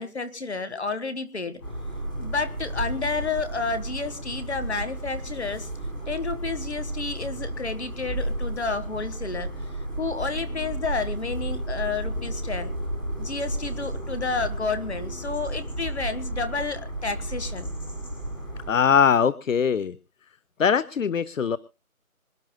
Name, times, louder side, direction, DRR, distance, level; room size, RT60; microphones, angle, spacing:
voice 1, 0.0-1.6 2.2-5.7 6.1-9.5 10.0-12.7 13.2-17.7, left 4 dB, 50° left, 10 dB, 1.6 m, -30 dB
sound 1, 1.6-18.7, right 1 dB, 15° left, 3.8 m, -33 dB
voice 2, 18.7-20.0 20.6-21.6, left 7 dB, 65° left, 19 dB, 0.7 m, -21 dB
26.0 x 10.5 x 2.2 m, 0.31 s
figure-of-eight pair, 175°, 42 cm